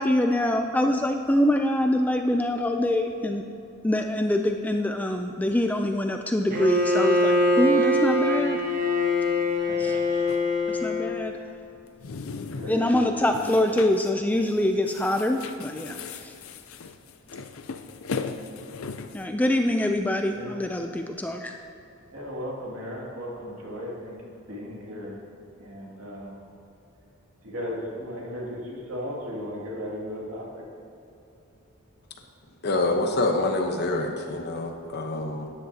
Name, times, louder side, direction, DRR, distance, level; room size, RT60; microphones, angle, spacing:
voice 1, 0.0-3.4 3.8-8.6 9.8-10.0 10.7-11.3 12.7-16.3 19.1-21.6, left 1 dB, 5° left, 4 dB, 0.3 m, -24 dB
Bowed string instrument, 6.5-11.3, left 1 dB, 40° right, 1.0 m, -23 dB
voice 2, 9.6-10.2 11.2-11.5 12.4-13.6 20.3-20.7 22.1-24.2 24.5-25.2 25.6-26.4 27.4-30.6, equal, 75° right, -4 dB, 2.4 m, -36 dB
sound 1, 10.3-10.4 11.9-12.9 13.3-14.1 14.4-14.6 14.9-19.2, left 4 dB, 70° left, 0.5 m, -37 dB
voice 3, 32.6-35.5, left 2 dB, 50° left, 3 dB, 1.0 m, -26 dB
13.0 x 10.5 x 2.8 m, 2.7 s
head